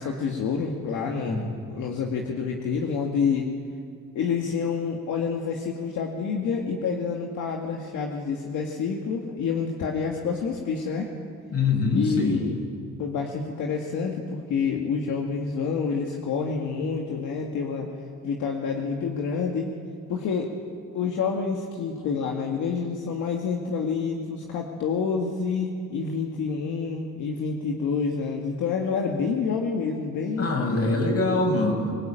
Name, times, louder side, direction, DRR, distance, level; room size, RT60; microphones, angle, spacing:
voice 1, 0.0-3.5 4.1-11.1 11.9-12.6 13.0-17.9 18.2-19.7 20.1-20.5 20.9-30.5, left 5 dB, 80° left, 1 dB, 2.2 m, -28 dB
voice 2, 11.5-12.4 30.4-31.9, left 3 dB, 50° left, 2 dB, 6.9 m, -24 dB
24.5 x 20.5 x 9.1 m, 2.3 s
cardioid pair, 90°, 30 cm